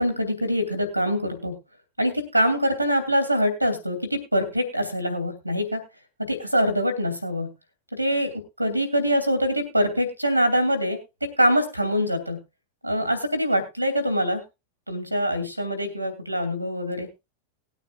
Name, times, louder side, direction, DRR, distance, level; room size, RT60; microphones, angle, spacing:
voice 1, 0.0-1.6 2.0-5.8 6.2-7.5 7.9-8.3 8.6-12.4 12.8-14.4 14.9-17.1, equal, 85° right, 9 dB, 2.7 m, -24 dB
19.5 x 9.1 x 2.4 m, 0.25 s
figure-of-eight pair, 90°, 0 cm